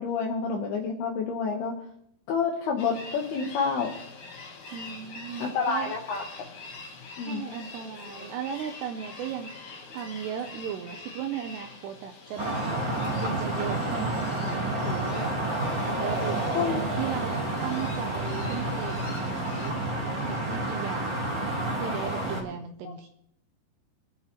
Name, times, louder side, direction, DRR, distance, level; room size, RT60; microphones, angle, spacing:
voice 1, 0.0-1.7 2.3-3.9 5.4-6.3 7.2-7.5 16.5-16.8, left 5 dB, 70° left, 0 dB, 2.7 m, -28 dB
sound 1, 2.8-19.7, left 4 dB, 55° left, 2.4 m, -43 dB
voice 2, 4.7-5.9 7.3-9.5 9.9-12.6 13.2-15.3 15.8-19.7 20.2-23.1, right 8 dB, 80° right, 5 dB, 2.5 m, -36 dB
sound 2, 12.4-22.4, right 1 dB, 30° right, 3.0 m, -30 dB
22.5 x 9.5 x 3.0 m, 0.72 s
omnidirectional pair, 5.4 m